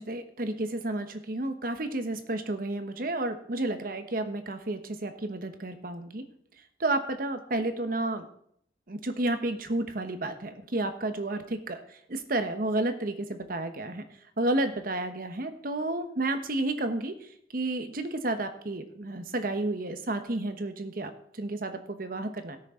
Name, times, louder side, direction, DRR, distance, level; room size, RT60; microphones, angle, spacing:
voice 1, 0.0-6.2 6.8-8.3 8.9-14.0 14.4-17.1 17.5-21.1 21.4-22.6, right 2 dB, 55° right, 8 dB, 1.1 m, -31 dB
18.0 x 6.5 x 3.8 m, 0.67 s
head